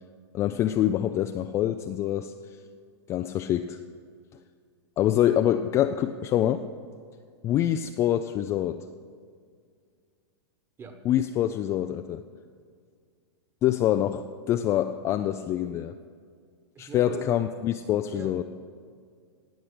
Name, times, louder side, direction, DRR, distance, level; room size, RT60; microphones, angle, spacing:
voice 1, 0.3-2.3 3.1-3.8 5.0-6.6 7.4-8.8 11.1-12.2 13.6-15.9 16.8-18.4, left 11 dB, 20° left, 8 dB, 0.3 m, -25 dB
voice 2, 16.7-17.4 18.1-18.4, right 4 dB, 15° right, 6 dB, 1.4 m, -41 dB
18.0 x 6.3 x 8.8 m, 2.1 s
supercardioid pair, 150°, 14 cm